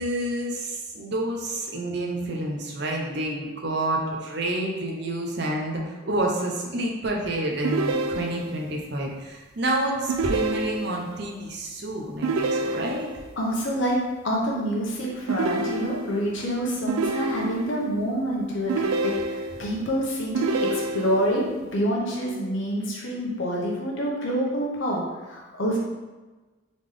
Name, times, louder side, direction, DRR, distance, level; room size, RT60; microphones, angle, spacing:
voice 1, 0.0-13.1, right 1 dB, 55° right, 0 dB, 0.6 m, -29 dB
sound 1, 7.6-8.7 10.1-11.1 12.2-13.3 15.3-16.3 16.9-17.8 18.7-19.7 20.3-21.4, right 3 dB, 90° right, 0.3 m, -28 dB
voice 2, 13.4-14.0 14.2-25.8, equal, 65° left, -3 dB, 1.0 m, -27 dB
4.0 x 3.5 x 3.3 m, 1.2 s
head